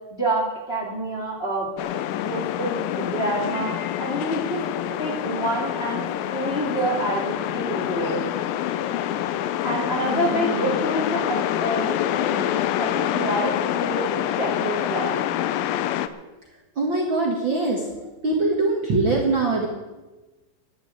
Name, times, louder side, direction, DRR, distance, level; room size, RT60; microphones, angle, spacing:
voice 1, 0.1-3.7 4.0-4.7 5.0-6.0 6.3-8.2 8.7-8.8 9.6-12.0 12.3-15.2, right 1 dB, 20° left, -2 dB, 2.4 m, -27 dB
sound 1, 1.8-16.1, left 11 dB, 90° left, 2.5 m, -26 dB
voice 2, 10.0-10.7 16.8-17.9 18.2-19.7, right 3 dB, 40° right, -1 dB, 2.1 m, -23 dB
11.5 x 10.5 x 9.0 m, 1.2 s
omnidirectional pair, 4.0 m